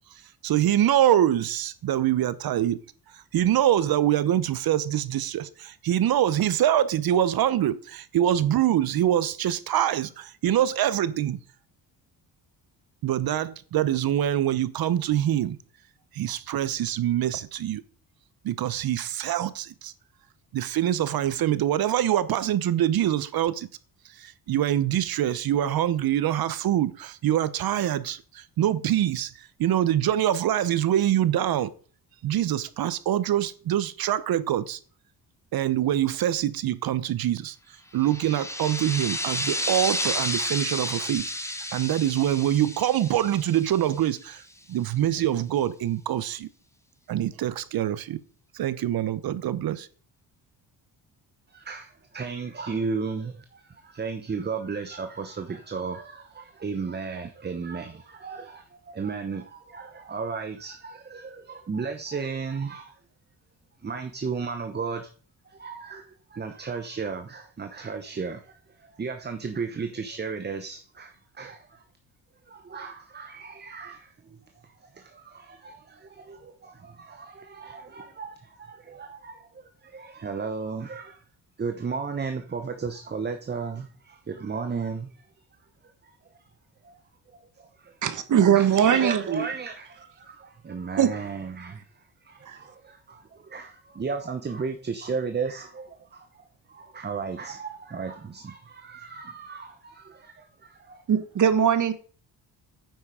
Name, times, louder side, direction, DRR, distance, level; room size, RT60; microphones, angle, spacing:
voice 1, 0.1-2.8 3.1-11.4 13.0-15.6 16.1-17.8 18.4-19.9 20.5-23.7 24.0-31.7 32.2-34.8 35.5-46.5 47.1-48.2 48.5-49.9, right 11 dB, 65° right, 0.9 m, -25 dB
sound 1, 38.0-44.3, left 1 dB, 5° left, 1.1 m, -31 dB
voice 2, 51.5-62.9 63.8-65.1 65.5-71.8 72.5-74.1 74.6-81.2 81.6-85.1 86.8-87.0 87.3-87.9 88.6-91.9 92.3-101.0, right 5 dB, 25° right, 1.0 m, -35 dB
voice 3, 88.0-89.4 91.0-91.1 92.5-92.6 101.1-101.9, right 8 dB, 50° right, 1.3 m, -21 dB
9.3 x 7.3 x 4.9 m
cardioid pair, 120°, 38 cm